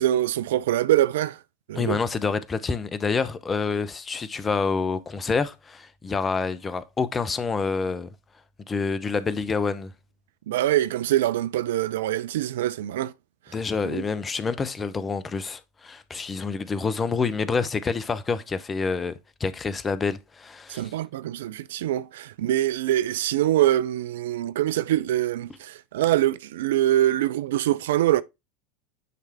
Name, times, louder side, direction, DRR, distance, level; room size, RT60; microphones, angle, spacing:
voice 1, 0.0-1.4 1.7-2.0 10.5-13.1 13.8-14.0 20.7-28.2, right 13 dB, 60° right, 0.3 m, -24 dB
voice 2, 1.7-8.1 8.7-9.9 13.5-20.9, left 4 dB, 20° left, 0.6 m, -27 dB
9.3 x 3.3 x 3.4 m
figure-of-eight pair, 80°, 0 cm